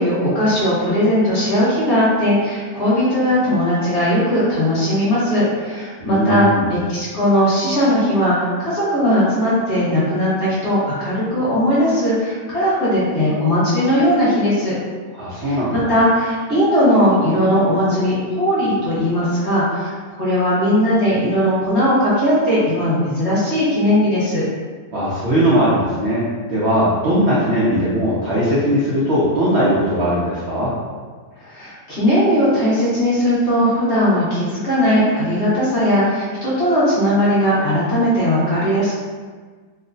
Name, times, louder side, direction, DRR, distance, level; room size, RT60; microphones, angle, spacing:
voice 1, 0.0-14.7 15.4-19.9 20.2-24.4 31.4-38.9, equal, 45° left, -10 dB, 1.3 m, -18 dB
voice 2, 6.0-6.7 15.1-16.0 24.9-26.2 26.5-30.7, equal, 65° right, -8 dB, 0.6 m, -19 dB
3.0 x 2.1 x 3.8 m, 1.5 s
omnidirectional pair, 1.9 m